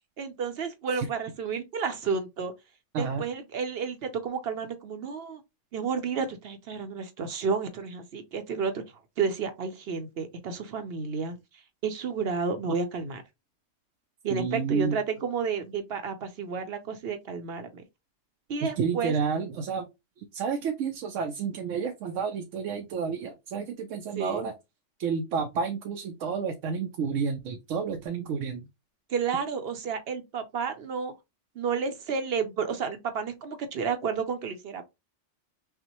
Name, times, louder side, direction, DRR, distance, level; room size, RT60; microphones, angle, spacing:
voice 1, 0.2-2.5 3.0-5.4 5.7-8.8 9.2-13.2 14.2-17.8 18.5-19.1 24.2-24.4 29.1-31.1 31.6-34.8, right 5 dB, 60° right, 0.8 m, -31 dB
voice 2, 14.3-15.0 18.8-19.9 20.2-24.5 25.0-28.7, right 5 dB, 90° right, 0.9 m, -30 dB
5.7 x 2.1 x 2.9 m
omnidirectional pair, 1.3 m